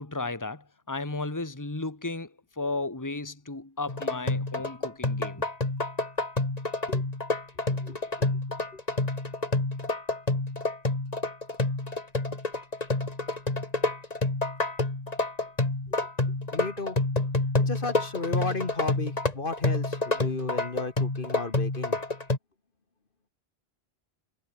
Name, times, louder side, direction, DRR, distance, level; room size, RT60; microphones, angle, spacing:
voice 1, 0.0-5.4, left 3 dB, 15° left, 1.9 m, -34 dB
sound 1, 3.9-22.4, left 2 dB, 35° left, 2.6 m, -28 dB
voice 2, 7.7-8.3 8.7-8.8 15.9-16.0 16.5-17.0 17.6-22.0, left 3 dB, 55° left, 2.1 m, -34 dB
omnidirectional pair, 1.1 m